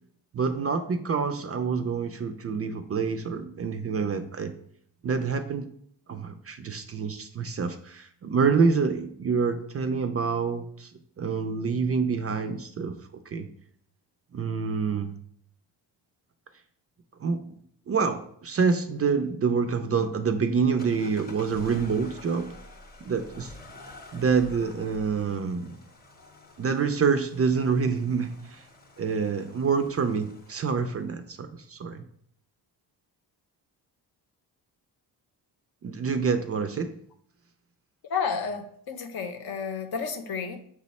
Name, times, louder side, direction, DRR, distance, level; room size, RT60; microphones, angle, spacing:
voice 1, 0.3-4.5 5.0-5.7 6.1-10.9 11.2-13.0 13.3-13.5 14.3-15.1 17.2-17.4 17.9-22.5 23.0-23.5 24.1-25.8 26.6-28.6 29.0-32.0 35.8-36.9, right 5 dB, 35° right, 8 dB, 0.4 m, -27 dB
sound 1, 20.8-31.0, left 2 dB, 20° left, 0.7 m, -48 dB
voice 2, 38.1-40.6, left 6 dB, 60° left, 6 dB, 0.7 m, -31 dB
6.1 x 2.1 x 4.1 m, 0.64 s
cardioid pair, 80°, 43 cm